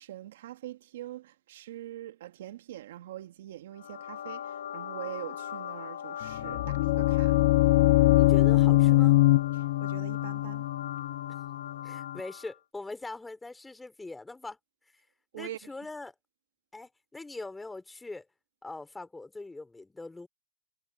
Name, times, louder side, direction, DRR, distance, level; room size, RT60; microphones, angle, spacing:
voice 1, 0.0-7.4 9.5-10.6 15.3-15.6, right 13 dB, 50° right, 1.6 m, -43 dB
sound 1, 3.7-12.6, left 10 dB, 60° left, 1.0 m, -40 dB
sound 2, 6.3-12.1, left 17 dB, 40° left, 0.7 m, -23 dB
voice 2, 8.1-9.2 11.8-14.6 15.3-16.1 16.7-18.3 18.6-20.3, left 2 dB, 5° left, 3.2 m, -42 dB
hypercardioid pair, 155°, 0 cm